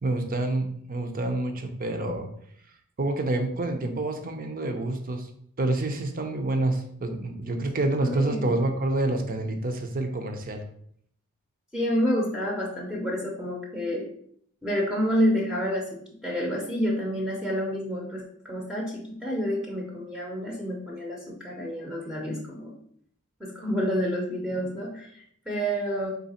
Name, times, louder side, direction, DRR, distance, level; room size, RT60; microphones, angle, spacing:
voice 1, 0.0-2.3 3.0-5.3 5.6-10.6, right 2 dB, 40° right, 6 dB, 0.6 m, -28 dB
voice 2, 8.0-8.5 11.7-14.1 14.6-22.7 23.4-26.1, equal, ahead, -2 dB, 0.6 m, -29 dB
4.0 x 3.1 x 4.2 m, 0.65 s
head